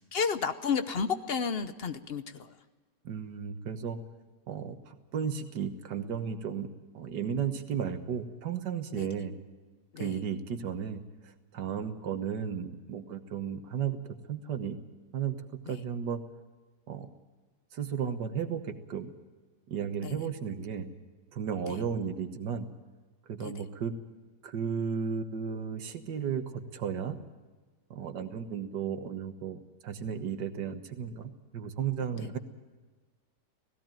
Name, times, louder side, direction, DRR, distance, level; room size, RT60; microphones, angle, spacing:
voice 1, 0.1-2.5 9.0-9.1 9.9-10.2 15.7-15.8 20.0-20.2 21.7-21.8 23.4-23.5 32.1-32.3, left 6 dB, 45° left, 10 dB, 0.9 m, -32 dB
voice 2, 3.1-4.0 4.5-6.7 6.9-9.3 10.0-11.0 11.5-14.8 15.1-16.2 16.9-17.1 17.7-19.1 19.7-20.9 21.3-22.7 23.3-23.9 24.4-27.2 27.9-32.4, right 7 dB, 85° right, 8 dB, 1.9 m, -34 dB
17.0 x 17.0 x 9.0 m, 1.3 s
omnidirectional pair, 1.8 m